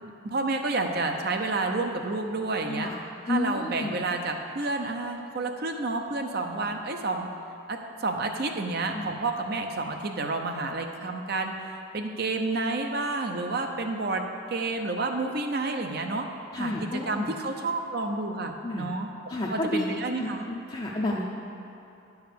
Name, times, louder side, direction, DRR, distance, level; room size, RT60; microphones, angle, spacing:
voice 1, 0.0-2.9 3.3-7.3 7.7-11.5 11.9-14.2 14.5-16.3 16.6-19.1 19.5-20.5, right 3 dB, 50° right, 4 dB, 0.6 m, -30 dB
voice 2, 2.7-3.0 3.3-3.9 8.9-9.2 16.5-17.3 18.6-18.9 19.3-19.8 20.2-21.2, left 2 dB, 25° left, -4 dB, 0.6 m, -31 dB
10.0 x 4.8 x 6.7 m, 3.0 s
head